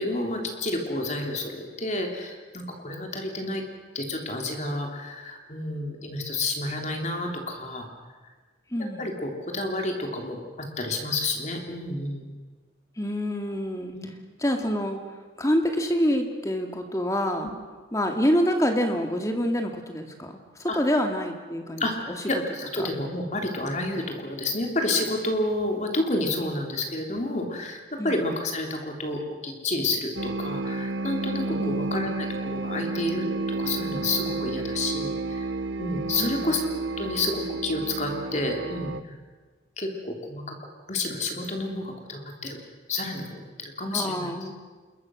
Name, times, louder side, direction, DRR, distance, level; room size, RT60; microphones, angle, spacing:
voice 1, 0.0-3.6 3.9-7.9 9.0-12.2 13.9-14.1 20.7-20.8 21.8-35.5 35.8-36.7 37.0-39.2 39.8-40.6 40.9-42.6 42.9-44.3, left 2 dB, 40° left, 3 dB, 3.2 m, -30 dB
voice 2, 8.7-9.1 13.0-13.9 14.4-15.0 15.4-17.5 17.9-20.3 20.6-22.2 22.8-22.9 28.0-28.2 31.6-31.8 36.2-36.5 43.9-44.5, equal, 15° left, 4 dB, 2.2 m, -26 dB
sound 1, 30.2-39.0, right 3 dB, 85° right, 0.9 m, -31 dB
27.0 x 22.0 x 6.3 m, 1.4 s
head